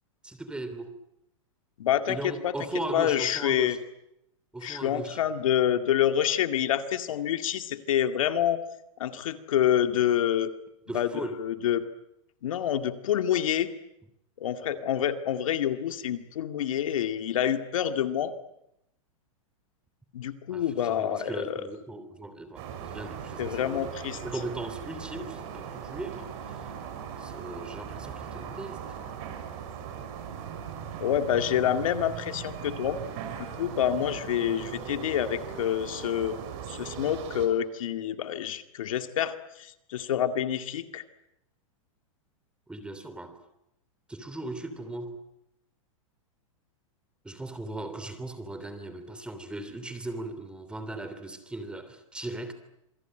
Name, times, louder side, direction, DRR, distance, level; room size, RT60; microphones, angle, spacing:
voice 1, 0.2-0.9 2.1-3.8 4.5-5.2 10.9-11.4 20.5-23.9 24.2-26.6 27.2-28.8 42.7-43.4 44.1-45.2 47.2-52.5, right 2 dB, 5° right, 3.2 m, -38 dB
voice 2, 1.8-2.5 2.9-3.8 4.6-8.6 9.0-10.5 10.9-11.1 11.4-11.8 12.4-13.7 14.4-18.3 20.1-21.6 23.4-24.2 31.0-33.0 33.4-36.4 36.7-41.0, left 10 dB, 75° left, 2.2 m, -27 dB
sound 1, 22.6-37.5, right 8 dB, 50° right, 6.1 m, -39 dB
27.0 x 22.5 x 9.1 m
hypercardioid pair, 135°, 17 cm